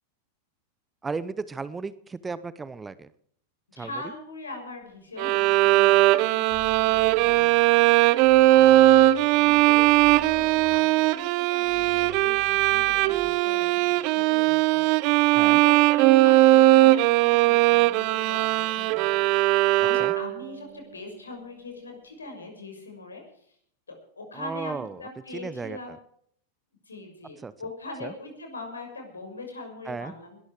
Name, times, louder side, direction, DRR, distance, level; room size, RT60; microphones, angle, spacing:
voice 1, 1.0-3.1 3.8-3.9 15.3-15.6 20.0-20.1 24.3-25.0 25.3-26.0 27.4-27.5 28.0-28.1 29.9-30.1, right 4 dB, 15° right, 17 dB, 0.9 m, -35 dB
voice 2, 3.7-8.0 8.4-23.2 23.9-26.0 26.9-30.4, left 2 dB, 75° left, 3 dB, 6.3 m, -41 dB
Bowed string instrument, 5.2-20.5, right 17 dB, 45° right, 0.8 m, -19 dB
sound 1, 6.5-7.9 8.2-11.1 11.6-13.3, left 5 dB, 35° left, 3.5 m, -48 dB
20.5 x 13.0 x 4.9 m, 0.64 s
figure-of-eight pair, 90°, 0 cm